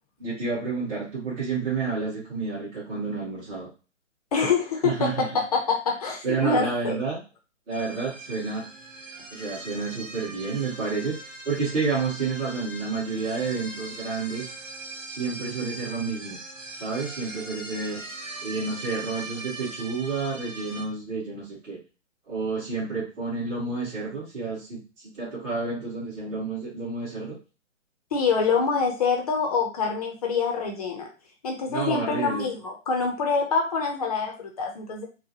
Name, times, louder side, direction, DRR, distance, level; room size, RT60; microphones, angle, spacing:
voice 1, 0.2-3.7 4.8-5.3 6.2-7.2 7.7-8.6 9.3-14.5 15.1-16.4 16.8-18.0 18.4-21.8 22.3-27.4 31.6-32.4, right 4 dB, 30° right, -9 dB, 1.9 m, -30 dB
voice 2, 4.3-7.0 28.1-31.1 31.4-35.0, left 5 dB, 30° left, 1 dB, 0.7 m, -25 dB
sound 1, 7.7-20.8, right 2 dB, 85° right, 1.1 m, -40 dB
4.4 x 2.2 x 2.8 m, 0.33 s
figure-of-eight pair, 140°, 38 cm